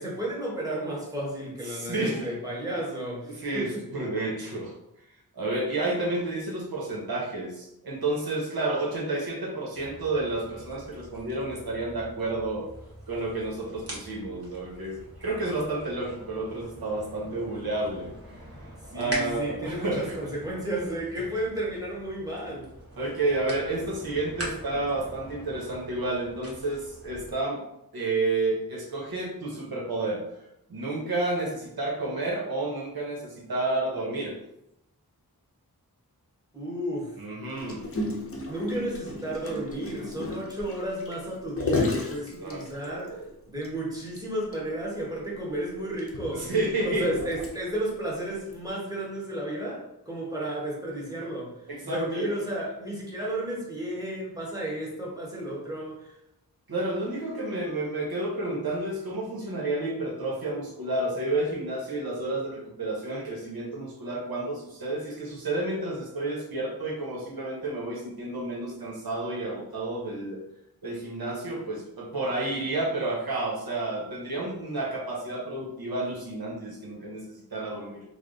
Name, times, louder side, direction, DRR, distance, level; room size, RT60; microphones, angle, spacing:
voice 1, 0.0-3.8 18.9-22.7 36.5-37.1 38.4-43.2 43.5-46.5 46.8-51.5 51.8-56.1, right 1 dB, 10° right, -5 dB, 1.2 m, -33 dB
voice 2, 1.7-2.3 3.3-4.7 5.3-12.7 13.1-18.1 18.6-18.7 18.9-20.3 23.0-27.6 27.9-30.2 30.7-34.4 37.2-37.9 41.9-42.0 42.4-43.3 46.3-47.1 51.7-52.4 56.7-70.4 70.8-77.2 77.5-78.0, right 2 dB, 70° right, -2 dB, 0.8 m, -30 dB
sound 1, 9.7-27.3, right 1 dB, 40° right, 1.2 m, -43 dB
Gurgling, 37.6-43.1 43.6-43.7 44.0-44.2 44.5-44.6 45.4-47.9 48.5-48.7, left 2 dB, 40° left, 0.7 m, -33 dB
3.3 x 2.0 x 3.8 m, 0.84 s
wide cardioid pair, 55°, 37 cm